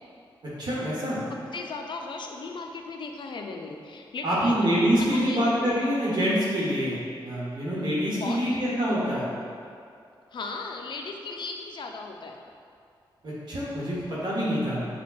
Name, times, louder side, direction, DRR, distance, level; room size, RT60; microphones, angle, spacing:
voice 1, 0.6-1.2 4.2-9.3 13.2-14.9, equal, 55° right, -8 dB, 1.0 m, -26 dB
voice 2, 1.3-4.6 5.1-5.7 8.2-8.4 10.3-12.4, left 4 dB, 60° left, 2 dB, 0.4 m, -37 dB
5.7 x 2.2 x 2.3 m, 2.4 s
cardioid pair, 65°, 9 cm